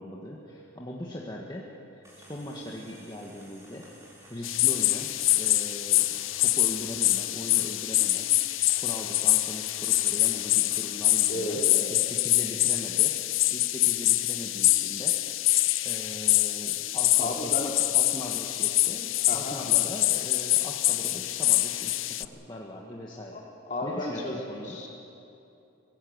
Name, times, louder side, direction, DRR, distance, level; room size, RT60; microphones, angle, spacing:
voice 1, 0.0-4.0 4.3-11.6 11.9-15.2 15.8-23.4 23.8-24.8, left 1 dB, 20° left, -2 dB, 1.7 m, -40 dB
sound 1, 2.0-11.4, equal, 15° right, 5.7 m, -53 dB
sound 2, 4.4-22.3, left 16 dB, 75° left, 0.6 m, -25 dB
voice 2, 11.3-12.0 17.2-17.7 19.3-19.6 23.3-23.4 23.7-24.9, left 1 dB, 40° left, -1 dB, 3.7 m, -33 dB
25.5 x 17.0 x 8.0 m, 2.8 s
head